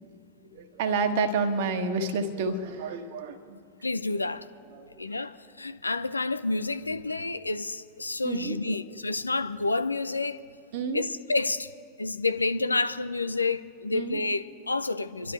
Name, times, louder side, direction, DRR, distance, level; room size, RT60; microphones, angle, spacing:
voice 1, 0.5-3.6 4.7-5.0 8.2-8.8 10.7-11.0 13.9-14.2, right 4 dB, 50° right, 1.4 m, -29 dB
voice 2, 3.8-4.5 5.0-10.4 10.9-11.7 12.0-15.3, left 3 dB, 80° left, 0.5 m, -29 dB
27.0 x 12.0 x 3.3 m
figure-of-eight pair, 90°, 0 cm